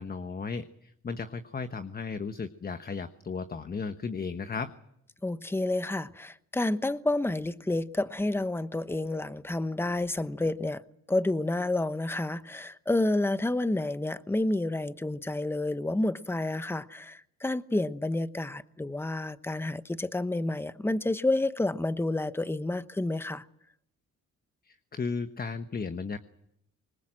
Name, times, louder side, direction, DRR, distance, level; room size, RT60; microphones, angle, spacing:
voice 1, 0.0-4.7 24.6-26.2, left 5 dB, 30° left, 1.2 m, -35 dB
voice 2, 5.2-10.8 11.1-23.4, left 2 dB, 10° left, 1.0 m, -29 dB
25.5 x 21.0 x 7.7 m
cardioid pair, 90°, 30 cm